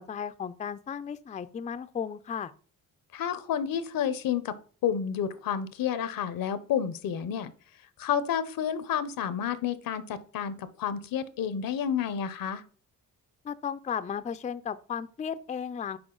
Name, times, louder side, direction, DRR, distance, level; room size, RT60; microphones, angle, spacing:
voice 1, 0.0-2.5 13.4-16.0, left 7 dB, 20° left, 0.3 m, -35 dB
voice 2, 3.1-4.6 4.8-7.5 8.0-12.6, left 8 dB, 75° left, 0.7 m, -30 dB
6.0 x 4.4 x 3.8 m
cardioid pair, 75°, 34 cm